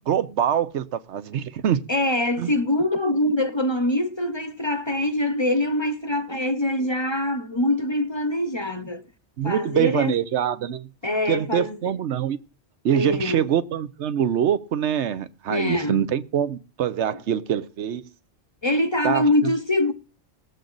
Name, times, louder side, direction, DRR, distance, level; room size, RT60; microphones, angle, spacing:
voice 1, 0.1-1.8 2.4-2.5 9.4-10.9 11.3-12.4 12.8-18.1 19.0-19.3, right 9 dB, 90° right, 1.0 m, -24 dB
voice 2, 1.9-9.0 9.4-10.1 11.0-11.9 12.9-13.5 15.5-16.0 18.6-19.9, left 1 dB, 30° left, 0.6 m, -24 dB
18.5 x 7.8 x 3.9 m
omnidirectional pair, 1.1 m